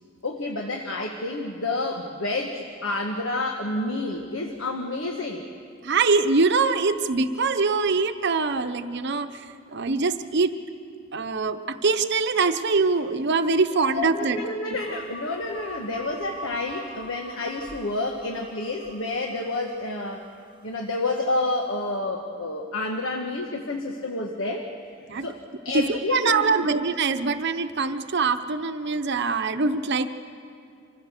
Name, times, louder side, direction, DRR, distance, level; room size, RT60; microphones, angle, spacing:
voice 1, 0.2-5.5 13.8-20.3 20.6-24.7 25.2-25.4 25.6-26.7, left 2 dB, 80° left, 2 dB, 1.2 m, -29 dB
voice 2, 5.8-9.5 9.7-10.5 11.1-14.4 25.1-25.3 25.7-30.1, right 4 dB, 60° right, 9 dB, 0.9 m, -23 dB
sound 1, 14.8-21.2, right 1 dB, 25° right, 1.2 m, -43 dB
26.0 x 15.5 x 6.7 m, 2.4 s
head